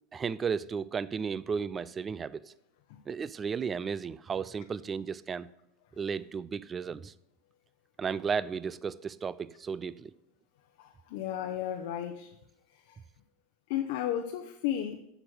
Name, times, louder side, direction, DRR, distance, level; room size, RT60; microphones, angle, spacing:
voice 1, 0.1-2.5 3.1-5.5 6.0-7.1 8.0-10.1, right 6 dB, 25° right, 0.4 m, -34 dB
voice 2, 10.8-12.4 12.7-13.0 13.7-15.0, left 11 dB, 65° left, 0.8 m, -34 dB
7.9 x 6.1 x 7.8 m
hypercardioid pair, 95°, 0 cm